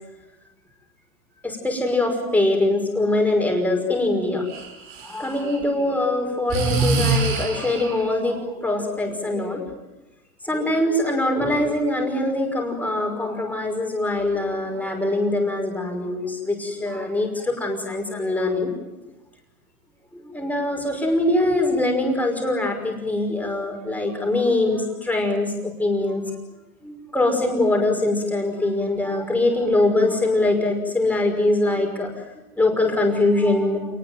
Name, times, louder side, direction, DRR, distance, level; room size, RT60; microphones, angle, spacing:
voice 1, 1.4-4.4 5.0-9.6 10.4-18.7 20.1-26.2 26.8-32.1 32.6-33.9, left 2 dB, 5° left, 3 dB, 5.7 m, -23 dB
Breathing, 4.5-5.6 6.5-8.1, right 3 dB, 25° right, 4.7 m, -24 dB
28.5 x 19.5 x 9.3 m, 1.1 s
hypercardioid pair, 140°, 45 cm